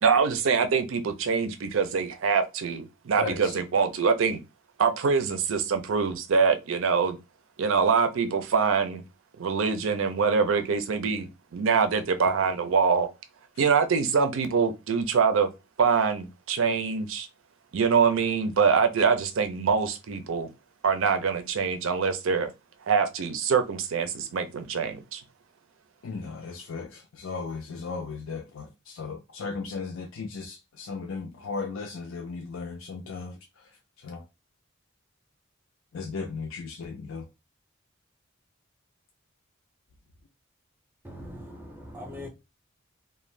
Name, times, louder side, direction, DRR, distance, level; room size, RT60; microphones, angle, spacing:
voice 1, 0.0-4.4 4.8-7.2 7.6-9.0 9.4-13.1 13.6-15.5 15.8-17.3 17.7-20.5 20.8-22.5 22.9-25.2, right 5 dB, 70° right, 0.5 m, -24 dB
voice 2, 3.2-3.6 26.0-34.2 35.9-37.3, left 4 dB, 70° left, 0.4 m, -36 dB
voice 3, 41.0-42.3, left 1 dB, 10° right, 0.6 m, -41 dB
2.5 x 2.2 x 3.1 m
head